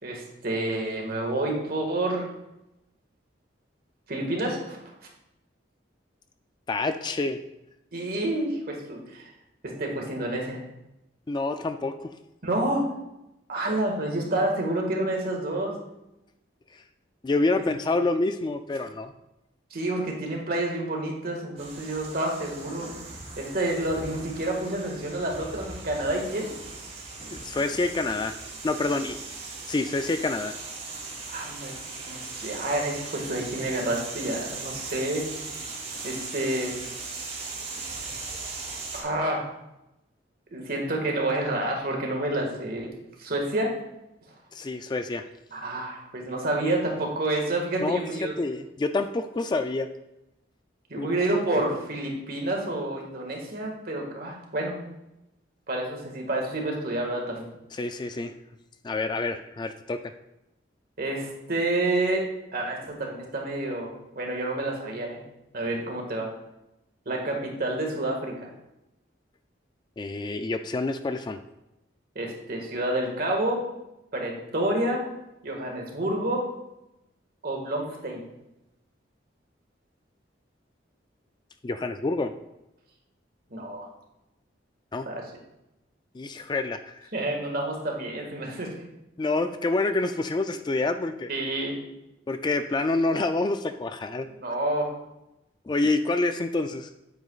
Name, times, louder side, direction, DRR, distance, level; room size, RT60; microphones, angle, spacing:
voice 1, 0.0-2.2 4.1-4.8 7.9-9.3 9.6-10.6 12.4-12.9 13.5-15.8 17.6-17.7 19.7-22.9 23.4-26.5 31.3-31.8 32.1-35.3 36.0-36.8 38.0-38.4 38.9-39.5 40.5-42.9 43.2-43.8 45.5-48.3 50.9-54.7 55.7-57.5 61.0-62.3 62.5-65.2 65.5-66.3 67.1-68.5 72.2-73.6 74.1-75.1 75.4-76.4 77.4-78.2 83.5-83.9 85.1-85.2 87.1-88.7 91.3-91.8 94.4-94.9, right 1 dB, 55° right, 1 dB, 1.8 m, -29 dB
voice 2, 6.7-7.4 11.3-12.1 16.7-16.8 17.2-19.1 27.3-28.4 28.6-29.2 29.7-30.5 44.5-45.2 47.8-49.9 51.0-51.1 57.7-58.3 58.8-60.1 70.0-71.4 81.6-82.3 84.9-85.1 86.1-87.1 89.2-91.3 92.3-94.3 95.7-96.9, left 2 dB, 25° left, 9 dB, 0.3 m, -27 dB
sound 1, 21.6-39.0, right 3 dB, 35° right, 1.8 m, -39 dB
9.2 x 8.2 x 2.4 m, 0.90 s
head